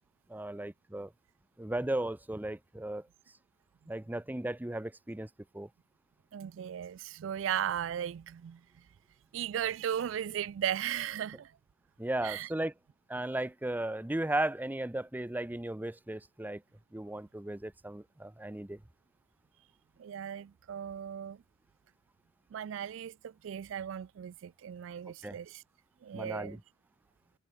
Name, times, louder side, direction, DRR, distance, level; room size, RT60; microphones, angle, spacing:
voice 1, 0.3-1.1 1.6-3.1 3.9-5.7 12.0-12.7 13.1-16.6 16.9-18.8 25.2-25.4 26.1-26.6, right 1 dB, 10° right, 0.5 m, -36 dB
voice 2, 6.3-8.6 9.3-11.5 12.2-12.5 20.0-21.4 22.5-25.6 26.0-26.6, right 9 dB, 70° right, 0.3 m, -36 dB
head